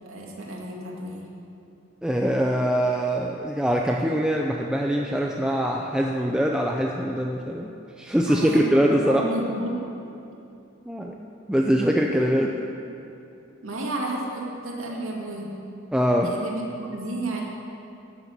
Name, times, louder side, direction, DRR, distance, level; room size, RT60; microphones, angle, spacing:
voice 1, 0.0-1.2 8.3-9.9 13.6-15.5 16.2-17.4, right 1 dB, 80° right, -2 dB, 2.2 m, -32 dB
voice 2, 2.0-7.7 8.0-9.2 10.9-12.5 15.9-16.3, equal, 5° right, 0 dB, 0.5 m, -23 dB
13.0 x 7.0 x 8.3 m, 2.7 s
head